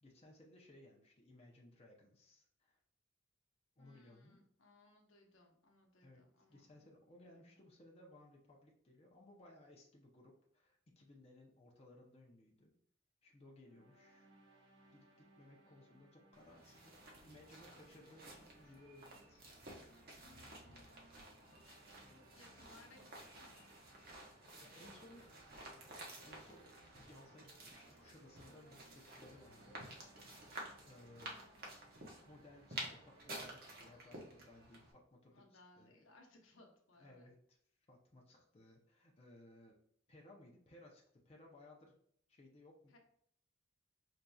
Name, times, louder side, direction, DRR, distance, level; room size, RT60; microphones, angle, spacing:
voice 1, 0.0-2.8 3.8-4.4 6.0-12.7 13.2-14.3 14.9-19.4 24.4-25.2 26.2-26.7 27.1-29.8 30.8-31.8 32.3-35.9 37.0-37.6 37.9-39.8 40.1-42.0 42.3-43.0, left 1 dB, 30° left, -1 dB, 0.6 m, -61 dB
voice 2, 3.8-6.8 7.3-7.6 15.5-16.0 20.2-21.2 22.1-23.6 24.5-25.0 31.3-31.8 35.3-37.3 42.9-43.0, left 2 dB, 80° left, 1 dB, 0.8 m, -66 dB
sound 1, 13.6-33.6, right 2 dB, 75° right, 0.9 m, -68 dB
sound 2, 16.3-34.9, right 1 dB, 50° right, 0.9 m, -53 dB
4.9 x 2.8 x 2.3 m, 0.64 s
head